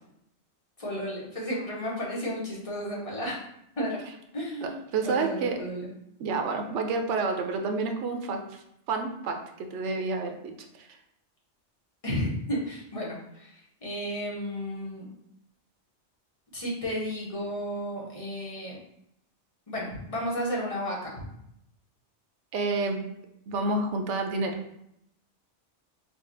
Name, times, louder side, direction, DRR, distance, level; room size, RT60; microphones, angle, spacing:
voice 1, 0.8-3.4 3.8-4.0 4.3-5.9 12.0-15.1 16.5-18.8 19.7-21.1, equal, 30° left, -4 dB, 1.0 m, -33 dB
voice 2, 4.6-5.6 6.2-10.9 22.5-23.1 23.5-24.6, right 3 dB, 85° right, 4 dB, 0.9 m, -29 dB
4.8 x 2.3 x 2.6 m, 0.77 s
omnidirectional pair, 1.2 m